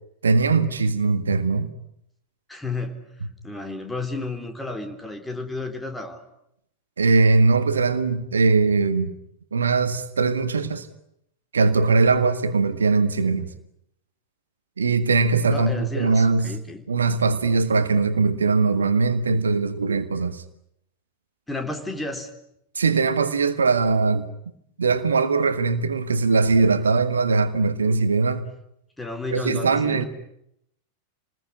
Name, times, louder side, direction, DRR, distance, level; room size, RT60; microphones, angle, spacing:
voice 1, 0.2-1.7 7.0-9.1 9.5-10.9 11.5-13.5 14.8-16.5 16.9-20.4 22.8-24.3 24.8-28.4 29.3-30.0, right 4 dB, 70° right, 1.7 m, -20 dB
voice 2, 2.5-3.0 3.4-6.2 15.5-16.8 21.5-22.3 29.0-30.1, left 3 dB, 10° left, 3.8 m, -32 dB
28.5 x 20.5 x 9.9 m
figure-of-eight pair, 90°, 0 cm